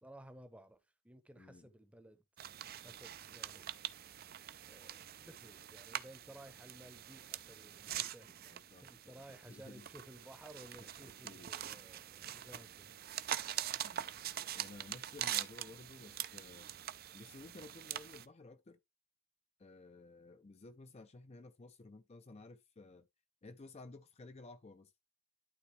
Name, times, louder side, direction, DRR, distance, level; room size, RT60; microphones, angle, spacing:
voice 1, 0.0-0.8 1.0-2.2 2.8-3.7 4.7-12.9, right 1 dB, 5° right, 0.8 m, -56 dB
voice 2, 1.4-1.7 8.4-9.2 9.5-9.9 10.8-11.5 12.2-12.3 13.8-14.0 14.4-16.7 17.1-18.8 19.6-23.1 23.4-24.9, left 3 dB, 30° left, 0.4 m, -55 dB
sound 1, 2.4-18.2, right 11 dB, 45° right, 0.4 m, -44 dB
11.5 x 3.9 x 3.2 m
head